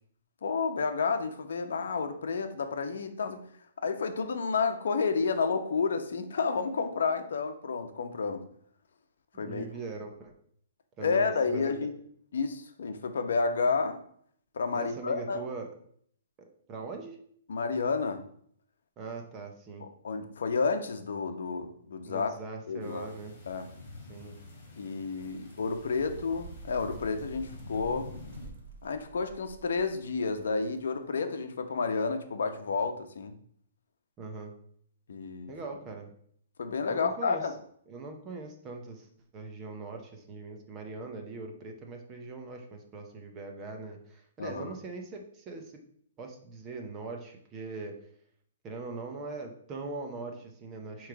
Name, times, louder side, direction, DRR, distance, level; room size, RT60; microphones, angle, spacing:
voice 1, 0.4-3.4 3.8-8.4 9.4-9.7 11.0-11.9 12.3-14.0 14.5-15.4 17.5-18.2 19.8-22.3 22.7-23.1 23.5-23.7 24.8-28.1 28.8-33.3 35.1-35.5 36.6-37.5 44.4-44.7, left 4 dB, 65° left, 7 dB, 0.8 m, -30 dB
voice 2, 9.3-10.3 11.0-11.7 14.7-15.7 16.7-17.2 19.0-19.9 22.0-23.4 24.1-24.4 34.2-34.5 35.5-36.1 36.9-37.5 37.9-39.1 39.3-45.7 46.2-48.0 48.6-51.1, right 3 dB, 15° right, 3 dB, 0.6 m, -41 dB
sound 1, 22.8-28.5, left 2 dB, 35° left, 3.0 m, -48 dB
sound 2, 25.2-30.9, right 3 dB, 40° right, 0.9 m, -49 dB
8.6 x 3.1 x 4.6 m, 0.64 s
hypercardioid pair, 180°, 0 cm